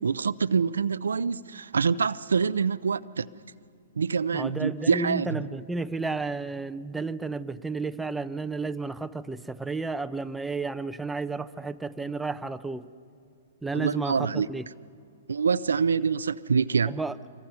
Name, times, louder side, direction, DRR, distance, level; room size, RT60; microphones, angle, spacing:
voice 1, 0.0-3.3 4.0-5.4 13.7-14.5 15.3-16.9, right 5 dB, 85° right, 0.5 m, -25 dB
voice 2, 4.3-12.9 13.6-14.7 16.9-17.1, right 3 dB, 5° right, 0.6 m, -32 dB
26.0 x 23.0 x 5.7 m
hypercardioid pair, 125°, 0 cm